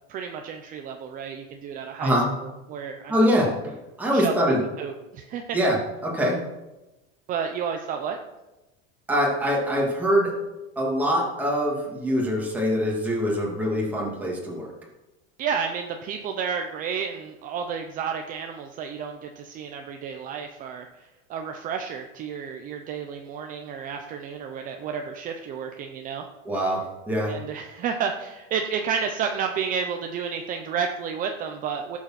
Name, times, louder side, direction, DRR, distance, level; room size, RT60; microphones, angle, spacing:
voice 1, 0.1-2.1 2.4-3.2 4.1-5.6 7.3-8.2 15.4-26.3 27.3-32.0, right 6 dB, 25° right, 4 dB, 0.8 m, -31 dB
voice 2, 3.1-4.6 5.5-5.8 6.0-6.4 9.1-10.3 10.8-14.7 26.4-27.4, equal, 5° right, -3 dB, 2.7 m, -24 dB
17.0 x 7.4 x 6.0 m, 1.0 s
cardioid pair, 175°, 30 cm